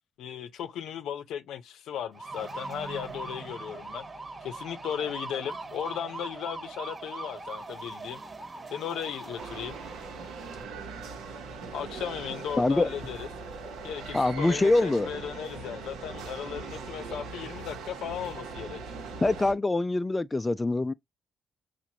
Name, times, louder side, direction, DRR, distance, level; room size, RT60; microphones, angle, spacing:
voice 1, 0.2-4.1 4.4-8.2 8.7-9.8 11.7-13.3 13.8-18.8, left 9 dB, 80° left, 0.6 m, -36 dB
sound 1, 2.1-10.6, right 3 dB, 35° right, 1.2 m, -41 dB
sound 2, 9.4-19.5, right 4 dB, 85° right, 1.1 m, -40 dB
voice 2, 12.6-12.9 14.1-15.1 19.2-20.9, left 2 dB, 25° left, 0.3 m, -24 dB
5.9 x 2.5 x 2.7 m
supercardioid pair, 60°, 0 cm